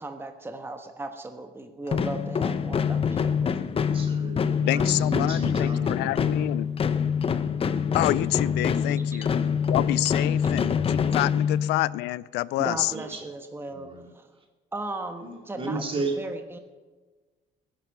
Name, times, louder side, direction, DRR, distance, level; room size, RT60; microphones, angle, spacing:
voice 1, 0.0-3.8 8.7-9.2 10.4-10.5 12.6-13.9 14.1-14.3 14.7-16.6, right 2 dB, 15° right, 6 dB, 1.3 m, -37 dB
sound 1, 1.9-12.0, left 7 dB, 35° left, 0.8 m, -25 dB
voice 2, 3.8-6.4 12.7-13.2 13.7-14.1 15.2-16.2, right 3 dB, 30° right, 2 dB, 2.9 m, -34 dB
voice 3, 4.7-6.7 7.9-9.4 9.7-12.9, left 18 dB, 90° left, 20 dB, 0.4 m, -28 dB
21.0 x 10.5 x 5.5 m, 1.3 s
cardioid pair, 110°, 17 cm